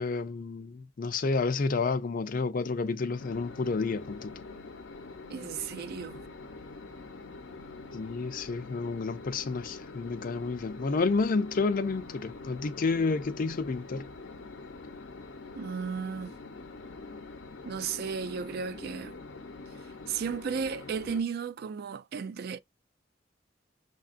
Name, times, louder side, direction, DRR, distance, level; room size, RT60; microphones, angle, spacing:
voice 1, 0.0-4.3 7.9-14.1, left 4 dB, 50° left, 0.4 m, -30 dB
sound 1, 3.2-21.2, left 3 dB, 85° left, 0.7 m, -45 dB
voice 2, 5.3-6.2 15.6-16.4 17.6-19.1 20.1-22.6, right 6 dB, 55° right, 0.3 m, -34 dB
6.3 x 2.3 x 2.5 m
head